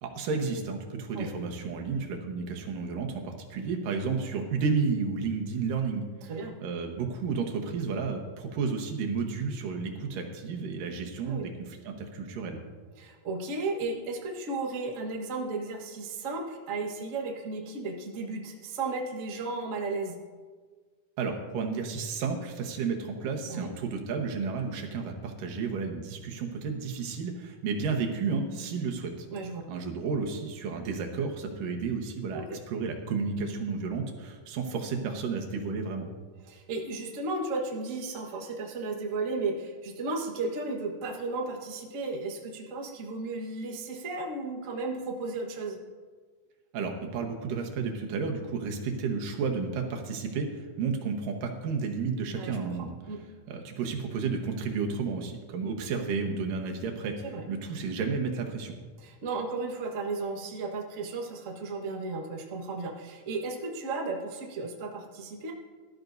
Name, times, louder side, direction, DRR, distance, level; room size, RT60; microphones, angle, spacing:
voice 1, 0.0-6.1 6.6-12.6 21.2-29.3 29.7-36.1 46.7-52.9 53.5-58.7, right 5 dB, 90° right, 2 dB, 2.9 m, -32 dB
voice 2, 6.2-6.6 11.2-11.5 13.0-20.2 23.5-23.8 29.3-29.6 32.3-32.6 36.5-45.8 52.3-52.7 53.1-53.2 57.2-57.4 59.0-65.5, right 3 dB, 65° right, 1 dB, 0.7 m, -34 dB
18.0 x 12.5 x 2.7 m, 1.5 s
omnidirectional pair, 3.7 m